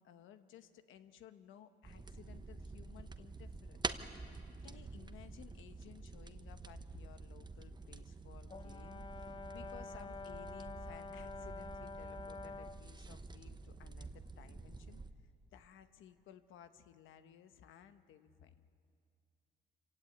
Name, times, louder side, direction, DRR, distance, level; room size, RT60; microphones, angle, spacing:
voice 1, 0.0-4.0 4.6-18.6, left 9 dB, 85° left, 9 dB, 1.1 m, -58 dB
sound 1, 1.8-15.1, right 3 dB, 20° right, 1.0 m, -48 dB
Brass instrument, 8.5-12.9, left 4 dB, 25° left, 0.8 m, -48 dB
26.0 x 16.5 x 8.9 m, 2.4 s
cardioid pair, 90°, 20 cm